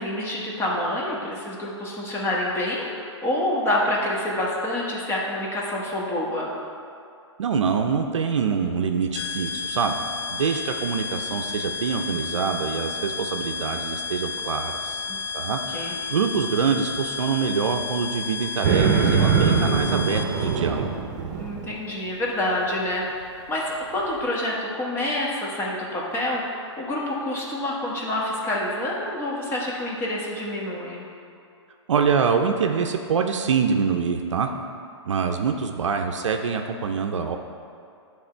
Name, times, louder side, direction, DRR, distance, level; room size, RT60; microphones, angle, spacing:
voice 1, 0.0-6.5 15.1-15.2 15.7-15.9 21.3-23.1 23.5-31.0, left 1 dB, 15° left, -4 dB, 1.3 m, -27 dB
voice 2, 7.4-10.0 10.3-15.0 15.3-20.9 31.9-34.5 35.0-37.4, right 6 dB, 85° right, 4 dB, 0.5 m, -25 dB
sound 1, 9.1-20.6, left 5 dB, 50° left, 0.6 m, -32 dB
sound 2, 18.6-21.7, right 6 dB, 45° right, 0.9 m, -22 dB
9.9 x 3.7 x 4.4 m, 2.4 s
hypercardioid pair, 140°, 15 cm